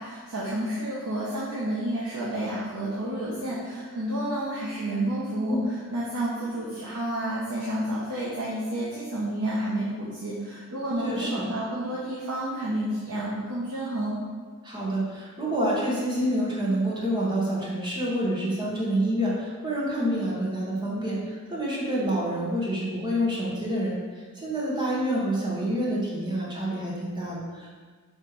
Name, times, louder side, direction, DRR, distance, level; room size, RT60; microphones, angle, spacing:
voice 1, 0.0-14.2, right 1 dB, 85° right, -6 dB, 1.1 m, -30 dB
voice 2, 11.0-11.5 14.6-27.7, right 1 dB, 20° right, -5 dB, 1.4 m, -28 dB
6.5 x 3.2 x 4.7 m, 1.5 s
head